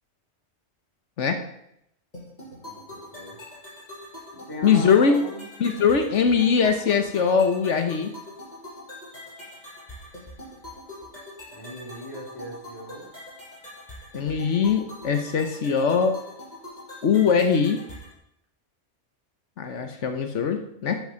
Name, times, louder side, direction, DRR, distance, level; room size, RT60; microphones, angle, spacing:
sound 1, 2.1-18.1, left 1 dB, 40° left, 5.8 m, -43 dB
voice 1, 2.4-3.4 4.3-5.5 11.5-13.1, equal, 20° left, -4 dB, 4.5 m, -38 dB
voice 2, 4.6-5.2 5.6-8.1 14.1-16.2 17.0-17.8 19.6-21.0, left 6 dB, 85° left, 6 dB, 1.4 m, -21 dB
13.0 x 7.2 x 6.4 m, 0.76 s
omnidirectional pair, 1.2 m